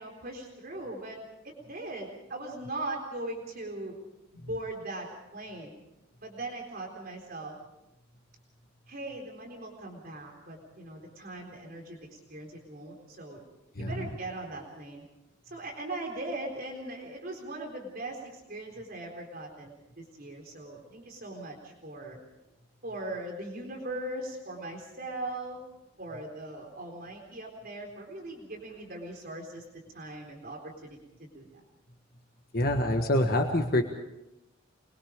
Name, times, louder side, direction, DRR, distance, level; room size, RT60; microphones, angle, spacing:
voice 1, 0.0-4.0 4.3-5.7 6.2-7.6 8.9-13.4 13.8-15.0 15.5-22.2 22.8-25.6 26.0-29.6 29.9-31.5, right 2 dB, 50° right, 1 dB, 3.9 m, -40 dB
voice 2, 13.7-14.1 32.5-33.8, left 1 dB, 50° left, 3 dB, 1.6 m, -26 dB
25.0 x 22.0 x 5.2 m, 0.94 s
head